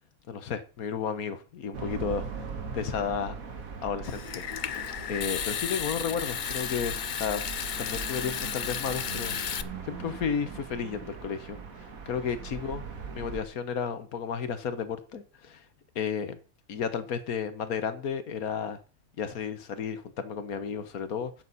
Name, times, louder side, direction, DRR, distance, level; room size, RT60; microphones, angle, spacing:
voice 1, 0.3-2.3 2.7-3.3 3.8-7.4 7.8-11.6 12.1-12.8 13.1-15.6 15.9-16.4 16.7-18.8 19.2-21.4, left 7 dB, 90° left, 1.6 m, -33 dB
sound 1, 1.7-13.5, right 5 dB, 75° right, 2.0 m, -40 dB
Water tap faucet / Sink (filling or washing) / Trickle dribble, 4.0-9.6, left 8 dB, 60° left, 0.5 m, -33 dB
11.0 x 8.1 x 4.1 m
omnidirectional pair, 1.5 m